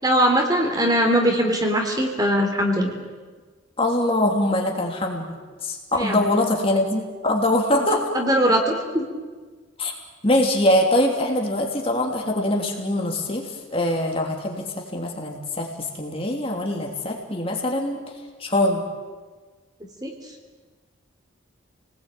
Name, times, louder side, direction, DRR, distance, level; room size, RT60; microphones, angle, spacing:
voice 1, 0.0-3.0 5.9-6.2 8.1-9.1 20.0-20.1, equal, 20° right, 3 dB, 3.4 m, -21 dB
voice 2, 3.8-8.1 9.8-9.9 10.2-15.7 15.9-18.0 18.4-18.8, left 1 dB, 25° left, 1 dB, 3.0 m, -23 dB
29.0 x 20.0 x 9.2 m, 1.4 s
head